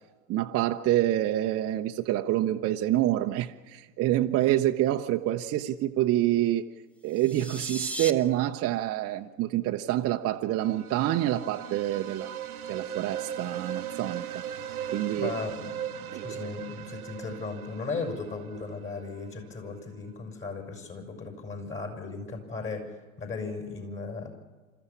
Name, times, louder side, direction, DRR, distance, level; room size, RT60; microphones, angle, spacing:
voice 1, 0.3-6.6 7.0-12.4 12.7-14.3 14.9-15.3 16.1-16.3, right 14 dB, 35° right, 4 dB, 0.8 m, -27 dB
sound 1, 7.1-8.1, equal, 5° left, 1.0 m, -36 dB
sound 2, 10.5-19.3, right 9 dB, 90° right, 0.7 m, -38 dB
voice 2, 15.1-24.3, left 4 dB, 30° left, 4 dB, 6.4 m, -36 dB
28.0 x 14.0 x 7.2 m, 1.3 s
figure-of-eight pair, 85°, 42 cm